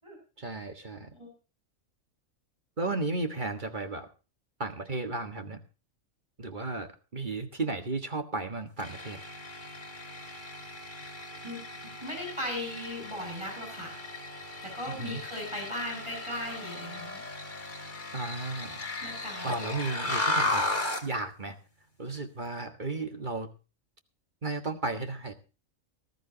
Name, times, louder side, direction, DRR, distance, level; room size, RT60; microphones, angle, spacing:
voice 1, 0.4-1.1 2.8-4.1 4.6-5.6 6.4-9.2 14.9-15.2 18.1-18.9 19.4-20.7 21.0-21.6 22.0-23.5 24.4-25.3, right 3 dB, 35° right, 7 dB, 1.7 m, -34 dB
sound 1, 8.8-21.1, left 2 dB, 35° left, 2.5 m, -35 dB
voice 2, 12.0-14.0 14.6-17.2 19.0-19.5, left 1 dB, 20° right, 0 dB, 7.5 m, -37 dB
19.5 x 13.5 x 2.8 m, 0.33 s
omnidirectional pair, 1.4 m